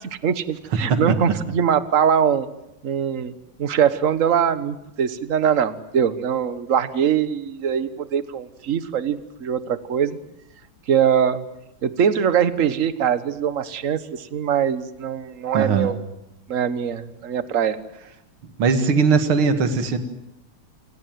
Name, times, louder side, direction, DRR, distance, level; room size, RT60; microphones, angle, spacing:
voice 1, 0.0-2.5 2.8-3.3 3.6-10.2 10.9-11.4 11.8-16.0 16.5-17.8, right 8 dB, 40° right, 13 dB, 1.4 m, -22 dB
voice 2, 15.5-15.9 18.6-20.0, right 5 dB, 75° right, 9 dB, 2.7 m, -19 dB
28.0 x 18.5 x 9.4 m, 0.85 s
omnidirectional pair, 2.4 m